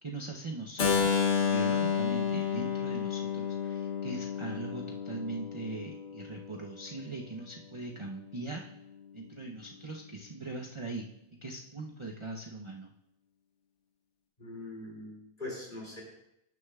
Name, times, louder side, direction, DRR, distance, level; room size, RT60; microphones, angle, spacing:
voice 1, 0.0-8.7 9.1-11.1 11.4-12.9, right 3 dB, 45° right, 0 dB, 0.4 m, -41 dB
Keyboard (musical), 0.8-6.6, left 7 dB, 55° left, 1.3 m, -31 dB
voice 2, 14.4-16.0, left 2 dB, 35° left, -3 dB, 2.9 m, -42 dB
16.5 x 6.5 x 2.3 m, 0.83 s
omnidirectional pair, 1.5 m